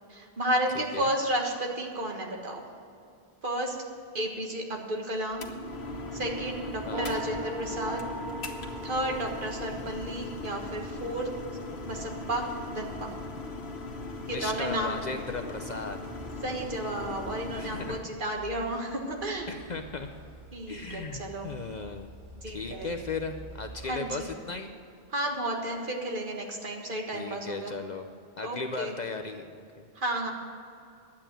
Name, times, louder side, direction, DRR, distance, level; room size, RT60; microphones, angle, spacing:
voice 1, 0.1-2.6 3.4-3.8 4.1-5.5 6.1-8.0 8.8-11.3 11.8-13.2 14.3-15.1 16.4-19.6 20.5-21.5 22.4-22.9 23.8-24.3 25.1-27.7 28.4-29.0 30.0-30.3, right 1 dB, 50° right, 1 dB, 1.8 m, -32 dB
voice 2, 0.7-1.1 6.8-7.2 14.3-16.0 17.5-18.1 19.5-20.1 20.7-22.1 22.5-24.7 27.1-28.1 28.4-29.9, left 4 dB, 50° left, 5 dB, 0.7 m, -37 dB
sound 1, 5.3-18.0, left 2 dB, 75° left, 1.4 m, -39 dB
sound 2, 6.9-10.3, right 1 dB, 25° right, 1.0 m, -39 dB
sound 3, 13.8-24.9, right 1 dB, 75° right, 3.7 m, -51 dB
11.0 x 8.6 x 8.9 m, 2.5 s
omnidirectional pair, 1.1 m